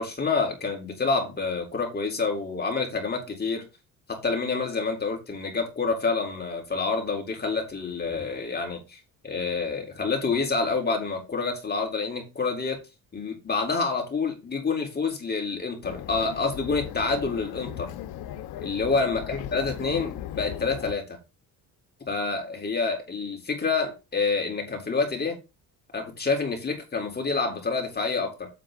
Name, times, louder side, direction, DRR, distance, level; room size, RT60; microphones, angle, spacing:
voice 1, 0.0-3.7 4.1-9.0 9.2-12.8 13.1-17.9 18.6-21.2 22.1-25.4 25.9-28.5, left 4 dB, 25° left, 3.9 m, -28 dB
sound 1, 15.8-20.9, left 12 dB, 80° left, 1.1 m, -37 dB
8.1 x 7.6 x 3.9 m
cardioid pair, 100°, 36 cm